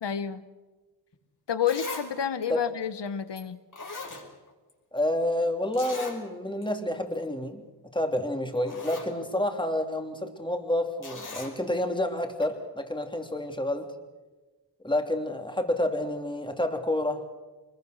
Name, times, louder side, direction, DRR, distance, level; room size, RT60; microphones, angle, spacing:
voice 1, 0.0-0.4 1.5-3.6, left 8 dB, 75° left, 12 dB, 1.4 m, -29 dB
Zipper (clothing), 1.1-1.2 1.7-2.1 2.4-2.5 3.4-3.5 3.7-4.7 5.0-5.1 5.7-6.2 6.6-6.7 7.1-7.3 8.1-8.2 8.5-9.1 11.0-11.5 12.4-12.5, left 3 dB, 45° left, 5.6 m, -39 dB
voice 2, 4.9-7.6 7.9-13.9 14.8-17.2, left 1 dB, 10° left, 5 dB, 3.0 m, -29 dB
25.0 x 21.5 x 6.7 m, 1.2 s
cardioid pair, 70°, 42 cm